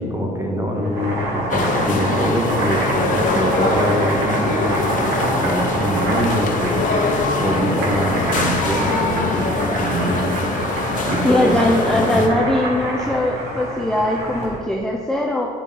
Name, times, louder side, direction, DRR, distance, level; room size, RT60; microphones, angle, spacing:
voice 1, 0.0-6.8 7.4-10.3 11.1-11.6 11.9-12.2, equal, 15° right, 1 dB, 1.5 m, -24 dB
Boiling, 0.8-14.6, right 1 dB, 85° right, 2.3 m, -25 dB
sound 1, 1.5-12.3, left 3 dB, 50° left, 1.1 m, -23 dB
voice 2, 11.2-15.5, left 1 dB, 5° left, 0 dB, 0.7 m, -20 dB
8.1 x 5.5 x 5.5 m, 2.2 s
cardioid pair, 110°, 17 cm